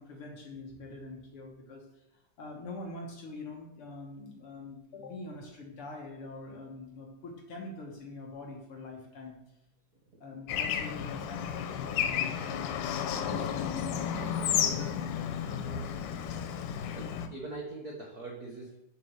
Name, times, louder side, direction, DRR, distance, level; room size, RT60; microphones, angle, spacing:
voice 1, 0.0-9.4 10.2-14.9 15.5-16.0, left 2 dB, 55° left, 0 dB, 1.8 m, -44 dB
Bird / Traffic noise roadway noise, 10.5-17.3, left 8 dB, 85° left, 2.3 m, -32 dB
voice 2, 14.2-14.5 16.9-18.8, right 3 dB, 65° right, -1 dB, 0.9 m, -42 dB
7.5 x 5.3 x 6.5 m, 0.84 s
omnidirectional pair, 3.6 m